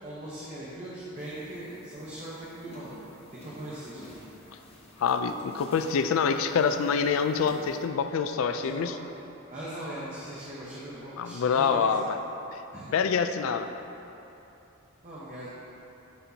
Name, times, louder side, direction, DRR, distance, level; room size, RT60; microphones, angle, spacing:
voice 1, 0.0-3.0 3.4-4.1 8.6-9.0 9.5-11.9 12.7-12.9 15.0-15.5, right 1 dB, 35° right, -8 dB, 0.9 m, -40 dB
sound 1, 1.2-7.9, left 1 dB, 30° left, 0.8 m, -51 dB
voice 2, 5.0-8.9 11.2-12.2 12.9-13.7, left 6 dB, 70° left, 8 dB, 0.3 m, -26 dB
11.0 x 4.4 x 2.8 m, 2.9 s
head